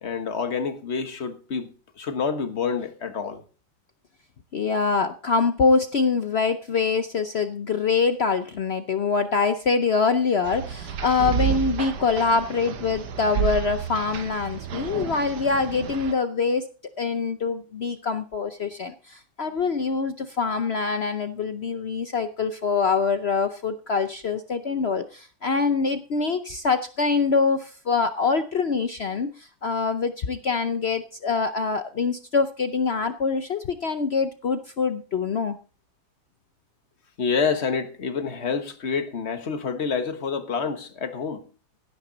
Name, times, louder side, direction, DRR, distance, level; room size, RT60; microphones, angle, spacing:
voice 1, 0.0-1.7 2.0-3.4 11.2-11.5 37.2-41.5, left 5 dB, 40° left, 1.4 m, -28 dB
voice 2, 4.5-16.7 17.0-35.6, left 4 dB, 70° left, 0.6 m, -24 dB
sound 1, 10.4-16.1, right 9 dB, 60° right, 1.5 m, -31 dB
16.0 x 9.0 x 4.0 m
omnidirectional pair, 2.1 m